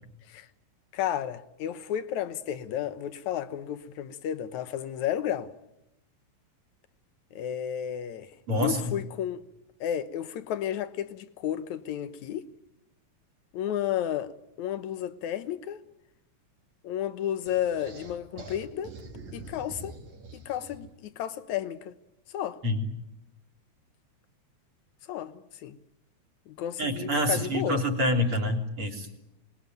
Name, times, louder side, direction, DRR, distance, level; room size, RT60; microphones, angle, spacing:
voice 1, 0.9-5.5 7.4-9.5 9.8-12.5 13.5-15.8 16.8-18.9 19.3-20.0 20.3-21.9 22.3-22.6 25.1-25.8 26.5-27.8, left 10 dB, 75° left, 2.4 m, -32 dB
voice 2, 8.5-8.9 22.6-22.8 26.8-29.1, equal, 45° right, 4.1 m, -27 dB
sound 1, 17.5-21.0, right 3 dB, 65° right, 4.0 m, -45 dB
26.5 x 21.0 x 9.3 m
omnidirectional pair, 3.4 m